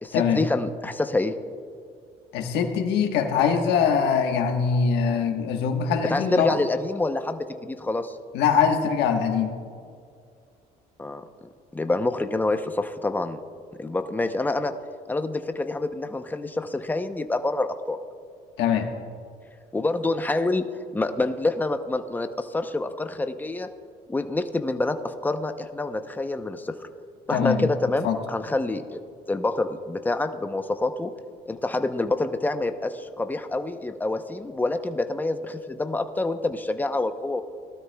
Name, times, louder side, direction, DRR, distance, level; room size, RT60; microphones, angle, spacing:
voice 1, 0.0-1.4 6.0-8.2 11.0-11.2 11.7-13.4 13.8-14.7 15.1-18.0 19.7-20.6 20.9-23.7 24.1-26.8 27.3-29.0 29.3-31.1 31.5-37.4, left 2 dB, 10° left, 8 dB, 0.7 m, -27 dB
voice 2, 2.3-6.6 8.3-9.5 18.6-18.9 27.3-27.7 28.0-28.2, left 6 dB, 85° left, 4 dB, 1.3 m, -22 dB
19.0 x 12.5 x 2.3 m, 2.3 s
cardioid pair, 110°, 17 cm